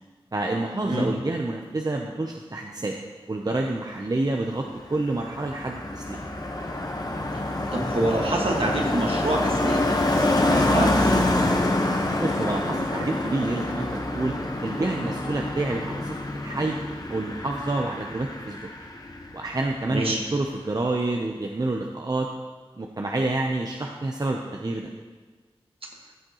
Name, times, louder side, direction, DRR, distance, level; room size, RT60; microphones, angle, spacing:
voice 1, 0.3-3.0 3.3-6.2 12.2-14.3 14.6-16.2 16.4-16.8 17.1-18.7 19.3-22.3 22.8-24.9, right 2 dB, 40° right, 1 dB, 0.7 m, -28 dB
Car passing by, 4.7-19.5 19.7-20.0, left 1 dB, 40° left, 1.2 m, -26 dB
voice 2, 7.7-11.2 19.9-20.2, right 1 dB, 60° right, -1 dB, 1.7 m, -26 dB
14.0 x 6.4 x 3.0 m, 1.3 s
cardioid pair, 50°, 10 cm